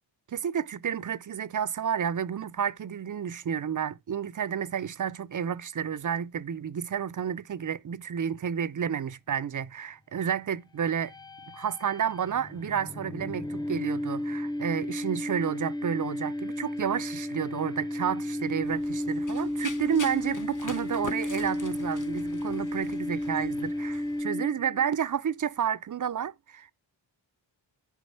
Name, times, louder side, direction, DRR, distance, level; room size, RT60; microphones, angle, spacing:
voice 1, 0.3-11.1 11.5-26.7, right 8 dB, 45° right, 0.5 m, -31 dB
sound 1, 10.9-24.9, left 1 dB, 10° left, 0.4 m, -33 dB
Run, 18.6-24.2, left 5 dB, 40° left, 1.1 m, -44 dB
11.0 x 5.0 x 4.3 m
wide cardioid pair, 80°, 45 cm